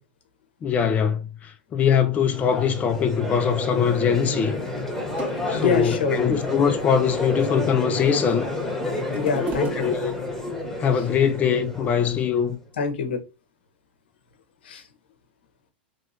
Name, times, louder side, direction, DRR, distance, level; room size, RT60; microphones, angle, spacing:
voice 1, 0.6-4.6 5.5-8.5 9.8-10.2 10.8-12.6, left 7 dB, 25° left, 0.5 m, -22 dB
Crowd, 2.3-12.5, left 2 dB, 5° left, 1.1 m, -30 dB
sound 1, 4.8-4.9 5.2-6.0 6.5-7.3 7.9-8.6 8.8-10.5 11.2-11.3, right 2 dB, 30° right, 1.2 m, -38 dB
voice 2, 5.5-6.2 9.1-9.9 12.8-13.2 14.6-14.8, left 5 dB, 80° left, 0.8 m, -25 dB
3.0 x 2.9 x 2.7 m
hypercardioid pair, 110°, 6 cm